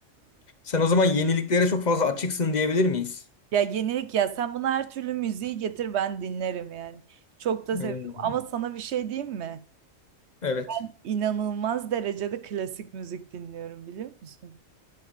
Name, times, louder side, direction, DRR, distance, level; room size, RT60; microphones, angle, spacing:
voice 1, 0.7-3.2 7.7-8.3 10.4-10.7, left 3 dB, 40° left, 0.9 m, -24 dB
voice 2, 3.5-7.0 7.4-9.6 10.7-14.5, right 9 dB, 65° right, 0.9 m, -30 dB
9.8 x 5.6 x 5.0 m
omnidirectional pair, 1.3 m